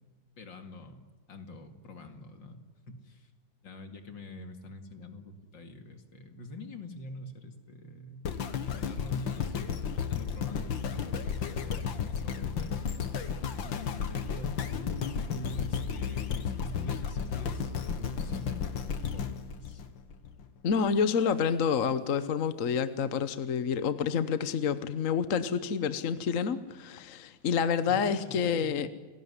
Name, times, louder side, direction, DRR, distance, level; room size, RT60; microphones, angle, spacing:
voice 1, 0.4-3.3 3.6-8.3 8.7-9.7 10.1-12.8 13.6-19.8 27.8-28.9, left 2 dB, 75° left, 6 dB, 3.0 m, -46 dB
sound 1, 8.3-20.5 21.0-21.1, left 6 dB, 90° left, 2.2 m, -33 dB
voice 2, 20.6-28.9, left 6 dB, 50° left, 12 dB, 1.2 m, -28 dB
29.0 x 18.5 x 9.8 m, 1.3 s
omnidirectional pair, 2.0 m